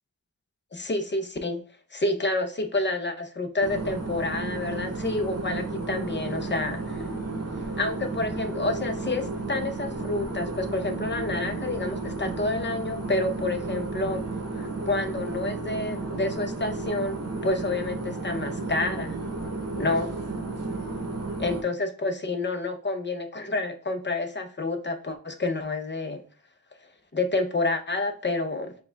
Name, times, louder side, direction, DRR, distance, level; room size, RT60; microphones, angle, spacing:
voice 1, 0.7-1.6 1.9-7.0 7.8-19.2 19.8-20.1 21.4-26.2 27.1-28.7, left 2 dB, 30° left, 7 dB, 0.6 m, -29 dB
sound 1, 3.6-21.6, right 3 dB, 45° right, 0.8 m, -33 dB
4.7 x 2.3 x 3.3 m, 0.40 s
wide cardioid pair, 40°, 35 cm